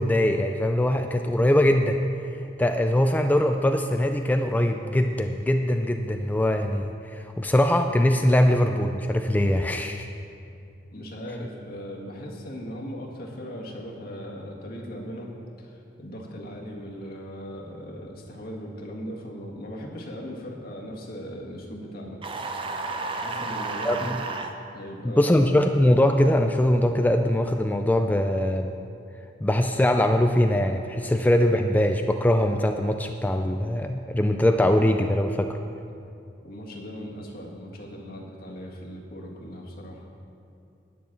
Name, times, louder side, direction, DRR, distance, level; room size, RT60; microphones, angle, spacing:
voice 1, 0.0-2.0 2.6-10.1 23.8-24.2 25.0-28.7 29.4-35.6, left 1 dB, 10° left, 5 dB, 0.3 m, -22 dB
voice 2, 10.9-15.3 15.6-22.2 23.2-24.2 24.7-25.3 36.4-40.1, equal, 55° left, -1 dB, 1.7 m, -38 dB
sound 1, 22.2-24.5, right 3 dB, 30° right, 0.6 m, -32 dB
10.5 x 6.2 x 8.6 m, 2.6 s
head